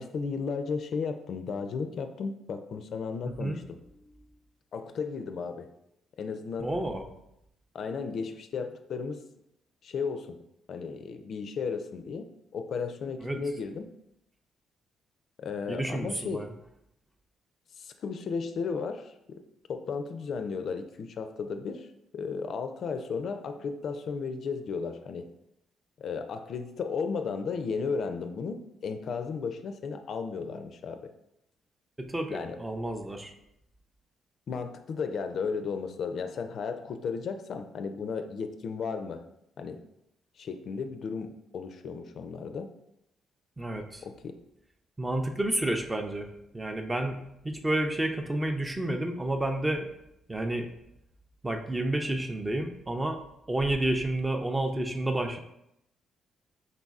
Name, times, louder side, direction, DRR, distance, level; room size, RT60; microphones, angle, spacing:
voice 1, 0.0-3.8 4.7-5.7 6.2-6.7 7.7-9.2 9.8-10.4 10.7-12.3 12.5-13.9 15.4-16.5 17.8-19.4 19.7-21.9 22.1-25.3 26.0-31.1 32.3-32.6 34.5-39.2 39.6-39.8 40.4-42.7 44.0-44.4, left 5 dB, 60° left, 7 dB, 0.4 m, -34 dB
voice 2, 6.6-7.1 13.2-13.4 15.7-16.5 32.0-33.3 43.6-44.0 45.0-49.9 50.3-50.7 51.4-53.2 53.5-55.4, right 1 dB, 15° right, 5 dB, 0.4 m, -30 dB
4.0 x 3.9 x 2.4 m, 0.81 s
cardioid pair, 90°, 0 cm